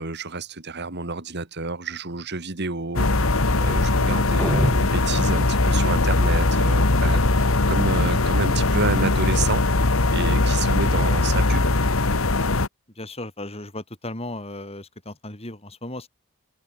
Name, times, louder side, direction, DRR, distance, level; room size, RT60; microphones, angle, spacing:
voice 1, 0.0-9.6 10.1-11.7, right 3 dB, 55° right, 2.1 m, -30 dB
sound 1, 3.0-12.7, left 2 dB, 70° left, 1.6 m, -20 dB
sound 2, 4.4-5.8, equal, 10° left, 3.4 m, -28 dB
voice 2, 12.9-16.1, left 1 dB, 30° left, 6.6 m, -35 dB
open air
head